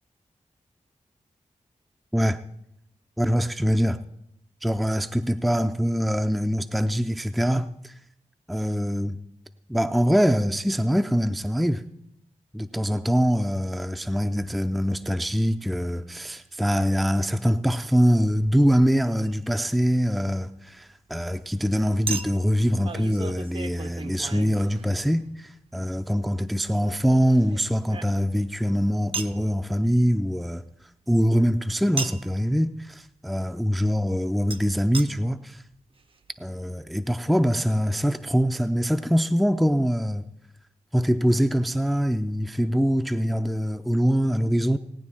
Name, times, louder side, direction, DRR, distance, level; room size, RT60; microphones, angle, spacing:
voice 1, 3.2-4.0 4.6-7.9 8.5-9.2 9.7-11.8 12.5-30.6 31.1-35.6 36.4-40.2 40.9-44.8, equal, ahead, 0.4 m, -23 dB
Chink clink, 19.2-19.4 22.1-25.2 26.8-28.5 29.1-29.4 32.0-32.4 34.5-34.6 34.9-35.1 35.7-35.8 36.0-36.1, right 4 dB, 45° right, 0.7 m, -36 dB
17.5 x 9.7 x 4.3 m
wide cardioid pair, 115°, 13 cm